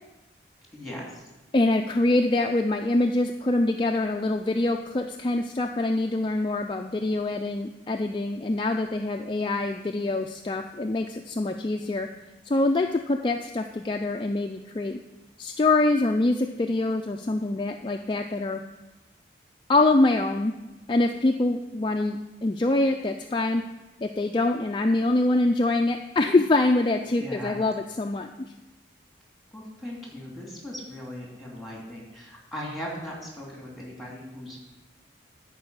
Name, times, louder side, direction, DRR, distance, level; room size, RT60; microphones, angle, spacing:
voice 1, 0.7-1.3 27.1-27.6 29.5-34.6, equal, ahead, -3 dB, 2.5 m, -38 dB
voice 2, 1.5-12.1 12.5-15.0 15.4-18.6 19.7-20.5 20.9-23.6 24.0-28.5, left 2 dB, 25° left, 4 dB, 0.4 m, -25 dB
10.5 x 4.7 x 8.0 m, 1.1 s
head